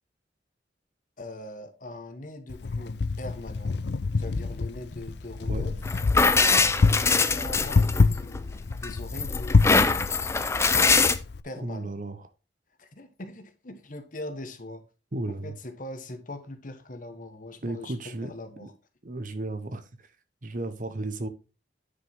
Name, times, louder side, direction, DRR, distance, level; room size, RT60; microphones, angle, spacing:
voice 1, 1.2-3.8 4.1-5.8 6.8-10.1 11.4-11.9 12.8-14.8 15.3-18.7, left 1 dB, 45° left, 1.4 m, -41 dB
Wind, 2.5-11.4, left 3 dB, 65° left, 0.5 m, -27 dB
sound 1, 5.8-8.4 8.8-11.2, left 4 dB, 15° left, 0.5 m, -23 dB
voice 2, 11.6-12.2 15.1-15.5 17.6-18.3 18.6-18.7 19.0-19.9 20.4-21.3, right 2 dB, 45° right, 1.0 m, -33 dB
9.8 x 5.7 x 3.6 m
head